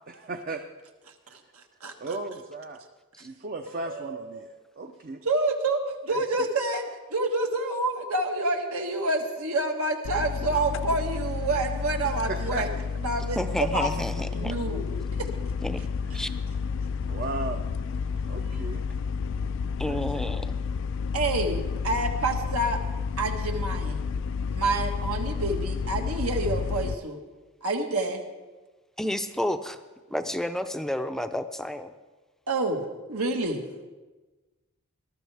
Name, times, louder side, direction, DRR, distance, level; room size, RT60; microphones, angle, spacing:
voice 1, 0.1-0.6 1.3-1.4 2.0-2.9 3.2-5.2 6.1-6.2 12.0-12.7 14.5-14.6 16.0-16.4 17.0-17.7 18.2-18.8 19.9-20.3, right 3 dB, 45° right, 5 dB, 0.6 m, -36 dB
voice 2, 1.3-1.9 3.8-4.4 5.2-12.7 13.0-13.9 14.3-14.9 15.2-15.3 21.1-22.8 23.2-24.0 24.5-27.2 27.6-28.3 32.5-33.6, right 2 dB, 85° right, 3 dB, 1.5 m, -28 dB
sound 1, 10.0-26.9, left 5 dB, 60° left, 0.4 m, -31 dB
voice 3, 13.4-14.5 15.6-15.8 16.1-16.3 19.8-20.6 29.0-29.8 30.1-31.9, left 1 dB, ahead, 8 dB, 0.5 m, -30 dB
20.0 x 12.5 x 3.4 m, 1.2 s
head